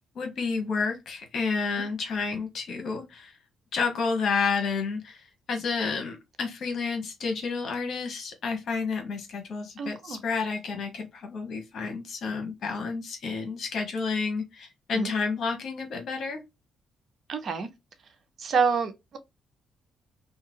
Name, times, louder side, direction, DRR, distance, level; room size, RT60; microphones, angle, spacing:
voice 1, 0.1-3.3 3.7-16.4, left 4 dB, 60° left, 1.1 m, -30 dB
voice 2, 9.8-10.2 14.9-15.1 17.3-17.7 18.4-19.2, right 5 dB, 55° right, 0.7 m, -27 dB
2.8 x 2.3 x 3.0 m
cardioid pair, 90°, 0 cm